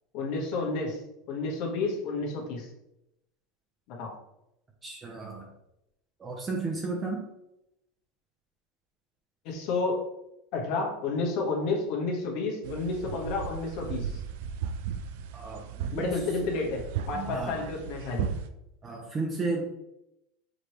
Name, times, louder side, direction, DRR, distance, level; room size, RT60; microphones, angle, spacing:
voice 1, 0.1-1.0 1.3-2.7 3.9-4.1 9.4-10.0 10.5-14.2 15.9-18.3, left 3 dB, 60° left, 0 dB, 1.3 m, -30 dB
voice 2, 4.8-5.5 6.2-7.2 15.3-16.1 16.4-16.5 17.1-17.6 18.8-19.7, right 3 dB, 25° right, -1 dB, 0.8 m, -33 dB
sound 1, 12.6-18.5, right 8 dB, 75° right, 0.4 m, -36 dB
5.1 x 3.1 x 3.1 m, 0.85 s
supercardioid pair, 115°, 0 cm